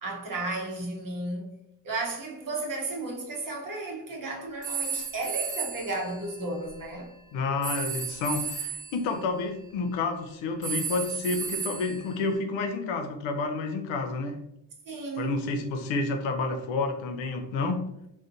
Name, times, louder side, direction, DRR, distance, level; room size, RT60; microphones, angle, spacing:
voice 1, 0.0-1.5 1.8-7.1 14.8-15.4, right 2 dB, 45° right, 0.8 m, -33 dB
sound 1, 4.6-6.9 7.6-9.0 10.6-12.3, right 6 dB, 20° right, 1.2 m, -34 dB
voice 2, 7.3-14.4 15.2-17.8, left 3 dB, 85° left, 0.5 m, -30 dB
2.5 x 2.1 x 2.5 m
cardioid pair, 70°, 45 cm